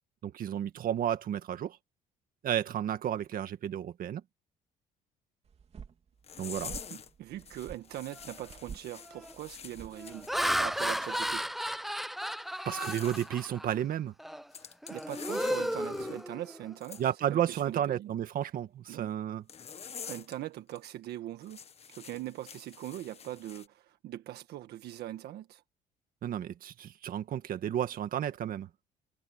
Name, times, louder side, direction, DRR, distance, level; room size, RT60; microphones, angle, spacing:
voice 1, 0.2-1.8 2.4-4.2 6.4-6.7 12.7-14.1 17.0-19.4 26.2-28.7, right 10 dB, 55° right, 1.9 m, -32 dB
sound 1, 5.5-10.9, right 6 dB, 40° right, 3.2 m, -50 dB
sound 2, 6.2-7.1 7.4-11.4 12.6-13.3 14.5-16.2 16.8-17.0 19.5-20.4 20.7-20.9 21.4-23.7, left 7 dB, 35° left, 1.5 m, -46 dB
voice 2, 6.9-10.3 10.6-11.5 14.9-17.0 17.3-18.1 18.9-19.1 20.1-21.6 21.9-25.6, right 13 dB, 75° right, 1.5 m, -41 dB
Laughter, 8.2-8.5 9.0-9.3 9.9-13.8 14.2-14.4 14.8-16.8, equal, ahead, 1.0 m, -34 dB
cardioid pair, 110°, 17 cm